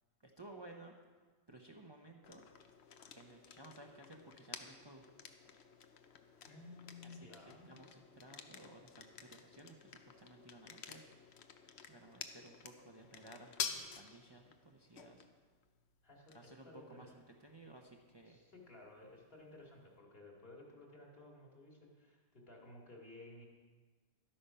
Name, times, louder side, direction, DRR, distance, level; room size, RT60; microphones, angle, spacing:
voice 1, 0.2-1.0 1.5-2.4 3.1-5.1 7.0-7.3 7.7-11.0 11.9-15.2 16.3-18.4, right 2 dB, 25° right, 1 dB, 0.9 m, -56 dB
sound 1, 2.2-20.0, left 6 dB, 75° left, 1.0 m, -51 dB
voice 2, 6.4-7.7 16.0-17.1 18.3-23.4, left 2 dB, 60° left, -1 dB, 2.4 m, -56 dB
12.0 x 8.7 x 5.6 m, 1.4 s
omnidirectional pair, 1.1 m